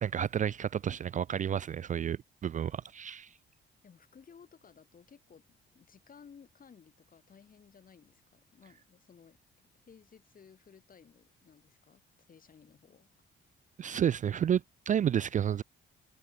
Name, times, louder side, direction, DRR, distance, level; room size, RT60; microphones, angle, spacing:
voice 1, 0.0-3.3 13.8-15.6, right 9 dB, 40° right, 0.4 m, -31 dB
voice 2, 3.8-13.1 13.4-13.6, left 6 dB, 45° left, 4.1 m, -58 dB
cardioid pair, 90°, 20 cm